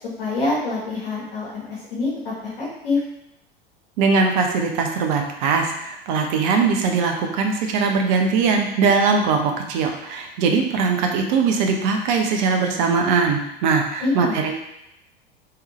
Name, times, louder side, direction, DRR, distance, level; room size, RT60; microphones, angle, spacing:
voice 1, 0.2-1.6 1.9-3.0 14.0-14.4, left 3 dB, 65° left, -6 dB, 1.3 m, -25 dB
voice 2, 4.0-14.5, right 5 dB, 50° right, 3 dB, 0.8 m, -21 dB
3.5 x 3.4 x 3.0 m, 0.83 s
figure-of-eight pair, 85°, 29 cm